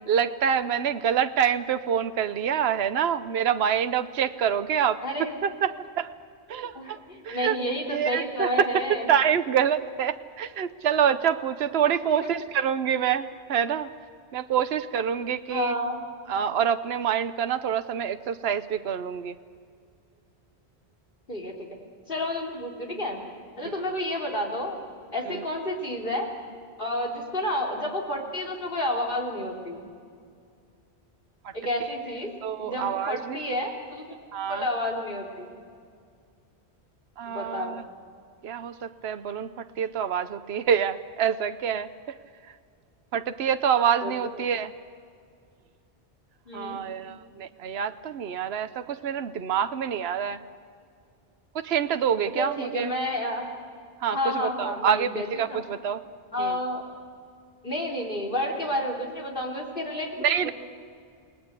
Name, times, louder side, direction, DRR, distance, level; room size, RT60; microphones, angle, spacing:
voice 1, 0.1-5.0 5.4-6.1 6.5-7.0 7.3-7.6 7.9-8.5 9.1-13.9 14.3-15.7 16.3-19.3 25.3-25.4 32.4-33.4 34.3-34.6 37.2-37.8 38.4-39.5 39.8-41.9 43.1-44.7 46.5-50.4 51.5-52.9 54.0-55.1 55.4-56.0 56.4-56.6 60.2-60.5, right 8 dB, 75° right, 10 dB, 1.0 m, -26 dB
voice 2, 5.0-5.4 6.5-9.1 11.9-12.3 15.5-16.0 21.3-21.5 22.1-23.2 23.6-24.8 25.1-26.3 26.8-29.8 31.5-32.3 32.6-34.1 34.5-35.5 37.3-37.8 44.0-44.1 46.5-46.8 52.3-53.5 54.1-55.6 56.3-56.8 57.6-60.5, left 1 dB, 55° left, 1 dB, 3.9 m, -30 dB
28.5 x 19.5 x 8.2 m, 2.3 s
omnidirectional pair, 1.1 m